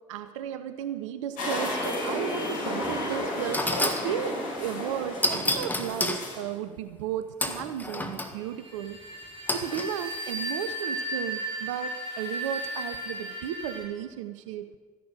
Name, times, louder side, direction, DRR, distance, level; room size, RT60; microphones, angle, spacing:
voice 1, 0.1-9.0 9.5-14.7, right 10 dB, 75° right, 11 dB, 0.6 m, -34 dB
sound 1, 1.4-6.4, left 1 dB, 60° left, 5.7 m, -32 dB
sound 2, 2.8-3.0 3.5-4.1 5.2-6.2 7.4-8.3 9.5-9.9, left 1 dB, 10° left, 1.6 m, -29 dB
sound 3, 8.5-13.9, right 1 dB, 35° right, 4.4 m, -35 dB
14.0 x 11.0 x 6.6 m, 1.5 s
figure-of-eight pair, 50°, 16 cm